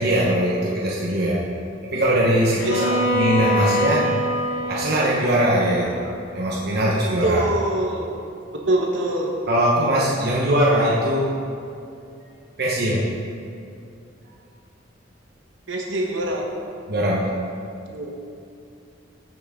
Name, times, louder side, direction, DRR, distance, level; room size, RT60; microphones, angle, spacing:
voice 1, 0.0-1.4 1.8-2.7 3.1-4.1 4.7-7.4 9.5-11.4 12.6-13.1 16.9-17.3, right 1 dB, 60° right, -5 dB, 1.1 m, -21 dB
Bowed string instrument, 2.6-6.6, equal, 70° left, 1.5 m, -25 dB
voice 2, 2.6-3.1 7.2-8.1 8.5-9.3 15.7-16.5 17.9-18.1, right 1 dB, 85° right, -1 dB, 1.2 m, -24 dB
15.0 x 6.2 x 3.7 m, 2.5 s
head